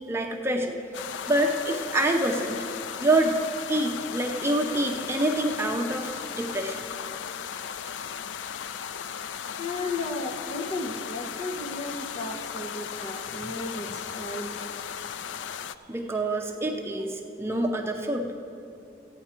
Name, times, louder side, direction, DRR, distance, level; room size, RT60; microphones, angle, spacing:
voice 1, 0.1-0.8 1.1-2.6 3.0-3.4 3.7-6.8 15.9-18.3, right 1 dB, 15° right, 2 dB, 0.7 m, -26 dB
sound 1, 0.9-15.7, left 8 dB, 80° left, 0.4 m, -36 dB
voice 2, 9.6-14.7, left 2 dB, 40° left, 3 dB, 1.0 m, -34 dB
15.0 x 9.0 x 4.4 m, 2.6 s
head